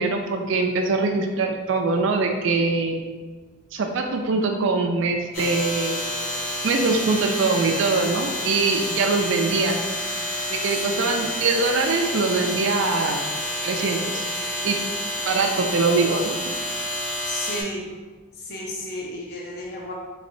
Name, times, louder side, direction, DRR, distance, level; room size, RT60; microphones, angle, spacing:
voice 1, 0.0-3.0 3.7-6.0 6.6-9.8 10.5-13.2 13.6-14.2 14.6-14.8 15.3-16.5, right 3 dB, 60° right, 3 dB, 0.3 m, -23 dB
sound 1, 5.3-17.6, left 1 dB, 85° left, 1.1 m, -29 dB
voice 2, 10.8-11.3 17.2-17.9 18.3-19.9, left 1 dB, 50° left, -3 dB, 0.5 m, -33 dB
3.5 x 3.1 x 2.6 m, 1.3 s
head